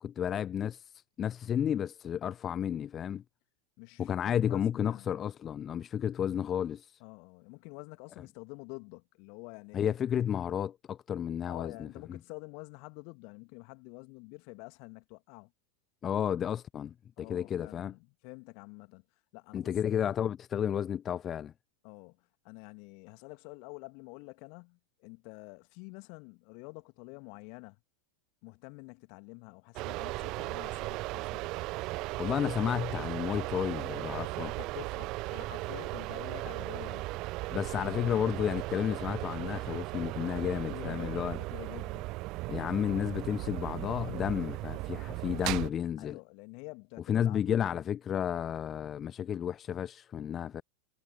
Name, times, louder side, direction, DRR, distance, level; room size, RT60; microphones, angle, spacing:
voice 1, 0.0-3.2 4.0-7.0 9.7-12.2 16.0-17.9 19.5-21.5 32.2-34.5 37.5-41.4 42.5-46.2 47.1-50.6, left 9 dB, 25° left, 0.7 m, -32 dB
voice 2, 3.8-5.1 7.0-10.0 11.5-15.5 17.2-19.0 19.3-20.1 21.8-27.8 28.4-31.5 34.4-37.1 40.4-42.1 46.0-47.6, left 37 dB, 45° left, 2.4 m, -48 dB
sound 1, 29.8-45.7, right 21 dB, 40° right, 0.7 m, -37 dB
figure-of-eight pair, 90°, 0 cm